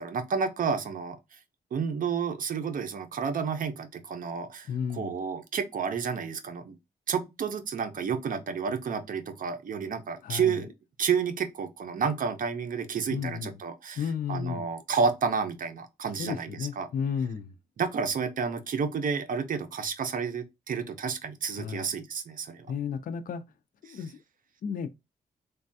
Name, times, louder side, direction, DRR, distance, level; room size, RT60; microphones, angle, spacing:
voice 1, 0.0-1.4 1.7-6.8 7.1-10.7 11.0-14.0 14.3-16.9 17.8-22.7 23.9-24.0, right 6 dB, 55° right, 0.6 m, -30 dB
voice 2, 4.7-5.2 10.2-10.6 13.1-13.5 14.0-14.7 16.2-17.6 21.6-21.9 22.6-23.4 23.8-24.2 24.6-24.9, left 7 dB, 55° left, 0.4 m, -33 dB
3.2 x 2.2 x 2.6 m
wide cardioid pair, 120°, 17 cm